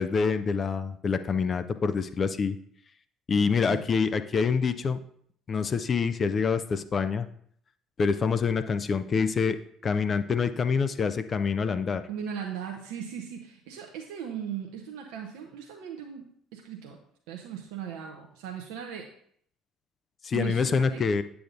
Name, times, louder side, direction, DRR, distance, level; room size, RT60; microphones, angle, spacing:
voice 1, 0.0-2.6 3.3-5.0 5.5-7.3 8.0-12.0 20.2-21.2, left 5 dB, 35° left, 11 dB, 0.4 m, -26 dB
voice 2, 12.1-16.2 16.5-17.0 17.3-19.1 20.3-21.0, right 8 dB, 65° right, 2 dB, 0.7 m, -38 dB
8.7 x 6.9 x 2.6 m, 0.63 s
figure-of-eight pair, 55°, 0 cm